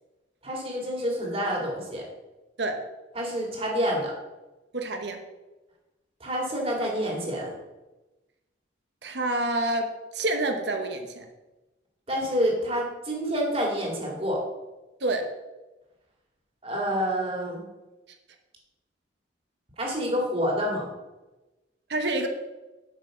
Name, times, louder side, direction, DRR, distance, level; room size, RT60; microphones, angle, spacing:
voice 1, 0.4-2.0 3.2-4.1 6.2-7.5 12.1-14.4 16.6-17.7 19.8-20.9, equal, 30° right, -1 dB, 2.3 m, -28 dB
voice 2, 4.7-5.2 9.0-9.9 10.1-11.2 15.0-15.2 21.9-22.3, right 2 dB, 65° right, 5 dB, 1.0 m, -27 dB
8.3 x 5.4 x 6.5 m, 1.1 s
head